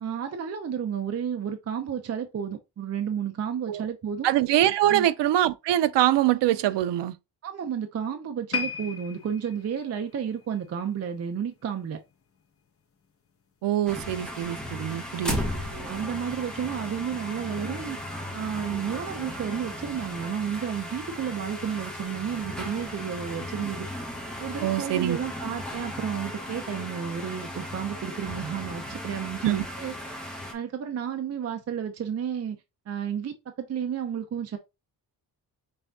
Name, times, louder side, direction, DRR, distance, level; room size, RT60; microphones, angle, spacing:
voice 1, 0.0-4.3 4.8-5.1 7.4-12.0 15.5-18.0 18.3-23.9 24.4-29.9 30.5-32.6 32.9-34.6, right 8 dB, 35° right, 0.6 m, -32 dB
voice 2, 4.2-7.1 13.6-15.4 24.6-25.2 29.4-29.6, right 13 dB, 80° right, 0.6 m, -24 dB
sound 1, 8.5-11.8 12.1-12.4 13.0-13.1, left 6 dB, 35° left, 0.8 m, -37 dB
sound 2, 13.9-30.5, equal, ahead, 1.1 m, -36 dB
5.5 x 3.4 x 2.7 m
wide cardioid pair, 175°, 42 cm